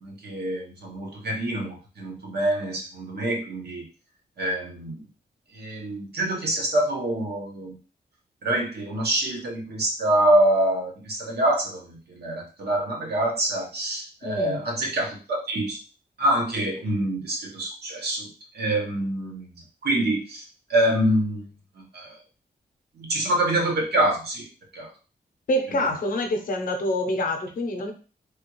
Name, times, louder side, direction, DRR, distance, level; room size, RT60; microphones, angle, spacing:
voice 1, 0.0-3.8 4.4-5.0 5.5-7.8 8.4-15.8 16.2-18.3 18.5-20.4 20.7-21.5 21.9-22.1 23.0-24.4 24.7-24.9 25.7-25.8, right 1 dB, 70° right, -1 dB, 1.0 m, -25 dB
voice 2, 14.2-14.6 25.5-27.9, left 1 dB, 55° left, 4 dB, 0.6 m, -26 dB
3.3 x 2.3 x 3.0 m, 0.35 s
wide cardioid pair, 145°, 17 cm